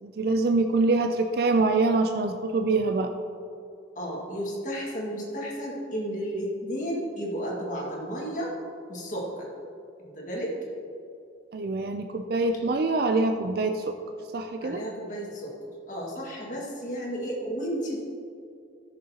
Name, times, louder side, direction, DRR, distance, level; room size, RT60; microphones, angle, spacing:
voice 1, 0.0-3.1 11.5-13.8 14.3-14.8, right 3 dB, 55° right, 6 dB, 0.4 m, -25 dB
voice 2, 4.0-8.5 8.9-9.5 10.0-10.6 14.6-15.5 15.9-18.0, equal, 40° left, -3 dB, 1.9 m, -33 dB
14.0 x 6.6 x 2.9 m, 2.6 s
head